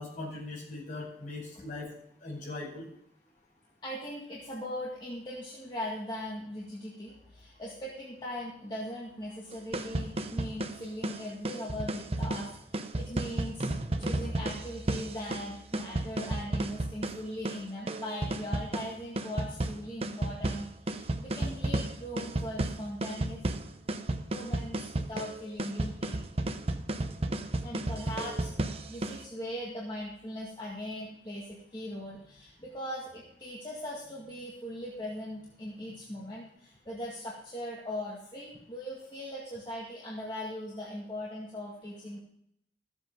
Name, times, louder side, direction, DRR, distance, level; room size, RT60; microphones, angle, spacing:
voice 1, 0.0-1.9 2.2-2.8, left 2 dB, 45° left, -3 dB, 5.2 m, -40 dB
voice 2, 3.8-13.7 14.0-23.4 24.3-26.2 27.6-42.2, left 1 dB, 25° left, -5 dB, 1.9 m, -40 dB
sound 1, 9.5-29.3, right 1 dB, 35° right, 0.7 m, -33 dB
14.5 x 7.9 x 5.2 m, 0.74 s
head